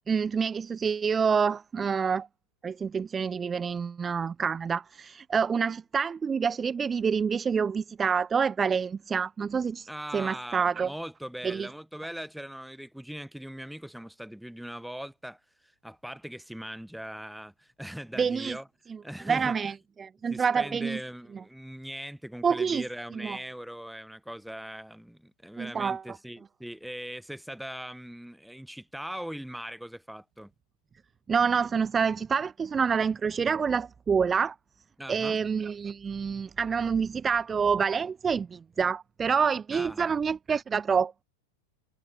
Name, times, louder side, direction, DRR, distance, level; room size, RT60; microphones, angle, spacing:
voice 1, 0.1-2.3 2.6-9.9 10.1-10.9 11.4-11.7 18.2-18.6 19.3-21.0 22.4-22.8 23.1-23.4 25.6-26.0 31.3-34.5 35.1-41.2, right 6 dB, 20° right, 0.7 m, -27 dB
voice 2, 9.9-18.7 19.0-19.7 20.3-30.5 35.0-35.4 39.7-40.2, equal, ahead, 6.3 m, -40 dB
figure-of-eight pair, 90°, 0 cm